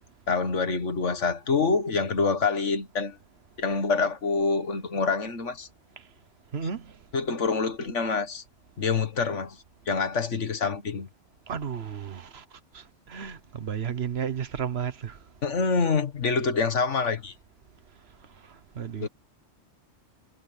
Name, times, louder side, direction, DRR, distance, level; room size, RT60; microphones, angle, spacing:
voice 1, 0.3-3.2 3.6-5.7 7.1-8.4 8.8-11.1 15.4-17.3 19.0-19.1, left 4 dB, 80° left, 1.9 m, -26 dB
voice 2, 6.5-6.9 11.5-12.4 12.7-15.2 18.7-19.1, right 7 dB, 60° right, 1.3 m, -33 dB
omnidirectional pair, 1.2 m